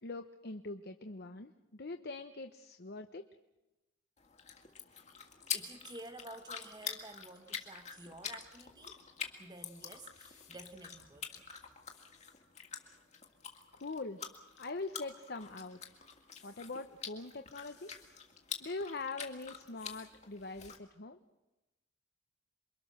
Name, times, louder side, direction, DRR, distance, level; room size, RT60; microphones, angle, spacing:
voice 1, 0.0-3.2 13.7-14.2 14.6-15.8 16.4-17.9 18.6-21.2, left 3 dB, 55° left, 0.9 m, -43 dB
sound 1, 4.2-20.8, left 7 dB, 35° left, 2.2 m, -46 dB
voice 2, 5.5-9.0 9.4-11.4, right 1 dB, 20° right, 1.5 m, -51 dB
28.0 x 23.5 x 6.6 m
head